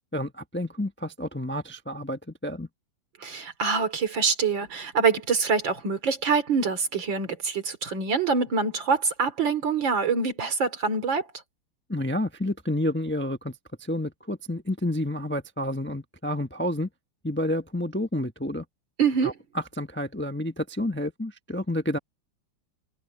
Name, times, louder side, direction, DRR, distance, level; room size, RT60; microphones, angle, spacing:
voice 1, 0.1-2.7 11.9-16.9 17.2-18.6 19.2-19.3 19.8-22.0, left 1 dB, 10° left, 0.7 m, -30 dB
voice 2, 3.2-11.2 19.0-19.3, right 5 dB, 70° right, 3.5 m, -25 dB
omnidirectional pair, 2.1 m